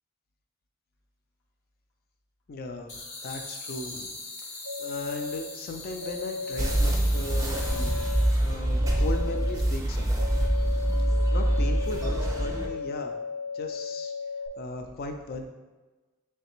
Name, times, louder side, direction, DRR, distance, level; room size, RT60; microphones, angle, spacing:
voice 1, 2.5-4.5 4.8-8.0 8.4-10.3 11.3-13.2 13.5-14.1 14.6-15.4, left 2 dB, 45° left, 4 dB, 0.4 m, -37 dB
sound 1, 2.9-8.6, left 3 dB, 65° left, 0.7 m, -41 dB
sound 2, 4.6-5.4 6.0-6.8 7.5-8.2 8.8-9.5 10.2-14.5, left 5 dB, 75° right, 0.4 m, -35 dB
sound 3, 6.6-12.7, right 1 dB, 15° right, 0.4 m, -25 dB
3.3 x 3.1 x 3.0 m, 1.2 s
head